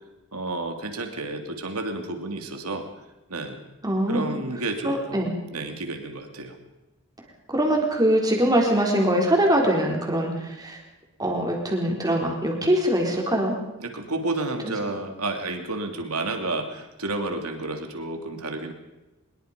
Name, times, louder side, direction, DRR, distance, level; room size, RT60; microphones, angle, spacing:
voice 1, 0.3-2.9 3.3-3.6 4.1-6.6 13.8-18.7, right 2 dB, 80° right, 5 dB, 3.0 m, -31 dB
voice 2, 3.8-4.3 4.8-5.3 7.5-10.8 11.2-13.6, right 1 dB, 15° right, 0 dB, 4.3 m, -22 dB
23.5 x 22.0 x 5.3 m, 1.0 s
head